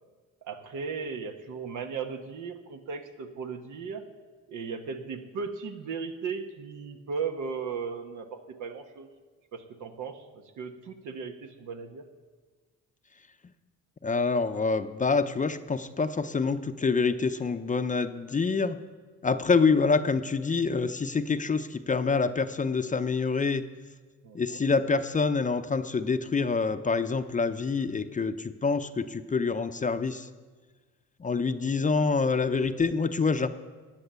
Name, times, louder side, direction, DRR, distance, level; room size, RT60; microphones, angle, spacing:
voice 1, 0.4-4.1 4.5-9.1 9.5-12.0 24.2-24.6 31.7-31.9, right 5 dB, 80° right, 6 dB, 1.2 m, -37 dB
voice 2, 14.0-18.8 19.2-23.6 24.3-30.3 31.2-33.5, left 4 dB, 25° left, 9 dB, 0.6 m, -26 dB
15.0 x 9.0 x 6.8 m, 1.4 s
cardioid pair, 90°, 30 cm